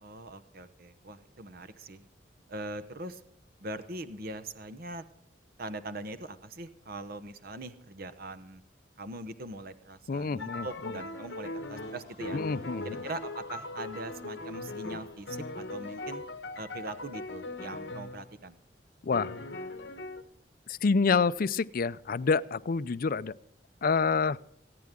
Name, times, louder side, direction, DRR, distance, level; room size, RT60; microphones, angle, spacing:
voice 1, 0.0-2.0 2.5-3.2 3.6-5.0 5.6-8.6 9.0-12.4 12.8-16.2 16.6-18.6, right 2 dB, 55° right, 13 dB, 0.9 m, -41 dB
voice 2, 10.1-11.0 12.3-12.9 19.0-19.3 20.7-23.3 23.8-24.4, left 5 dB, 50° left, 15 dB, 0.5 m, -27 dB
sound 1, 10.3-16.7, equal, 20° right, 6.0 m, -58 dB
sound 2, 10.4-18.3 19.1-20.2, left 2 dB, 70° left, 1.1 m, -39 dB
26.0 x 9.5 x 3.7 m, 0.67 s
head